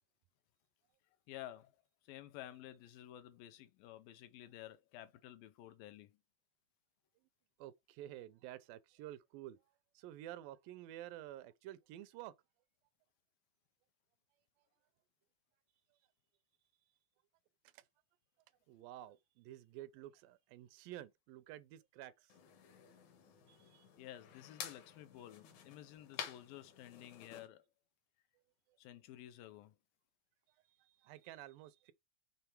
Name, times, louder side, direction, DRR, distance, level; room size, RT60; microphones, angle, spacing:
voice 1, 1.3-1.8 2.0-6.2 24.0-27.7 28.8-29.8, left 13 dB, 80° left, 2.3 m, -53 dB
voice 2, 7.6-9.6 10.0-12.3 17.7-17.8 18.7-22.3 23.5-23.9 30.8-31.9, right 13 dB, 80° right, 2.2 m, -51 dB
sound 1, 22.3-27.5, left 8 dB, 65° left, 2.3 m, -51 dB
6.8 x 3.7 x 4.5 m
omnidirectional pair, 4.1 m